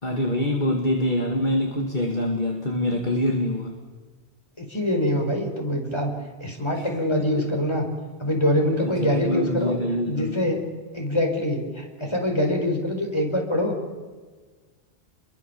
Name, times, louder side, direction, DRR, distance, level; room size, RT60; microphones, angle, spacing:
voice 1, 0.0-3.7 6.7-6.9 7.4-7.5 8.8-10.4, left 1 dB, 45° left, 2 dB, 2.3 m, -25 dB
voice 2, 4.6-6.1 6.4-7.8 8.2-9.7 10.1-10.6 10.9-13.7, left 1 dB, 25° left, 2 dB, 4.9 m, -24 dB
28.5 x 22.5 x 7.2 m, 1.4 s
omnidirectional pair, 1.1 m